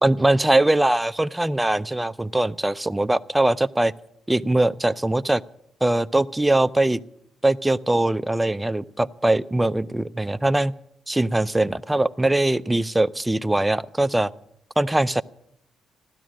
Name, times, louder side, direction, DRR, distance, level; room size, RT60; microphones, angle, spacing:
voice 1, 0.0-3.9 4.3-5.4 5.8-7.0 7.4-10.7 11.1-14.3 14.8-15.2, right 1 dB, 10° right, 13 dB, 0.5 m, -21 dB
15.5 x 12.5 x 6.3 m, 0.73 s
cardioid pair, 90°, 0 cm